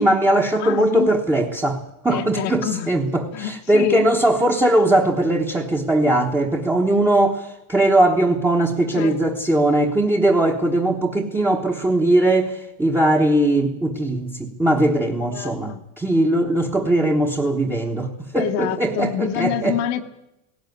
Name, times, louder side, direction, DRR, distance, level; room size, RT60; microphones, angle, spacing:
voice 1, 0.0-19.8, right 1 dB, 5° right, 0 dB, 1.2 m, -20 dB
voice 2, 0.6-1.1 2.1-2.9 3.3-4.1 8.9-9.2 15.3-15.8 18.4-20.1, left 12 dB, 60° left, 2 dB, 1.4 m, -26 dB
18.0 x 17.5 x 9.3 m, 0.88 s
cardioid pair, 175°, 41 cm